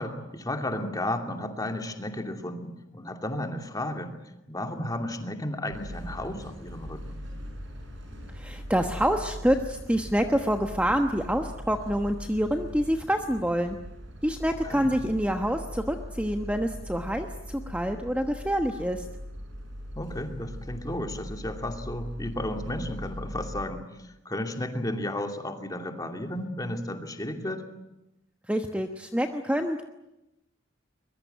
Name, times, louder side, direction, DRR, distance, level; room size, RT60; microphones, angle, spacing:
voice 1, 0.0-4.1 4.5-7.2 14.6-14.9 20.0-27.6, left 1 dB, 20° left, 4 dB, 2.6 m, -33 dB
sound 1, 5.7-23.7, equal, 65° right, 7.5 m, -40 dB
voice 2, 8.3-13.8 14.2-19.0 28.5-29.8, equal, 5° right, 5 dB, 1.2 m, -27 dB
23.0 x 22.0 x 9.1 m, 0.91 s
head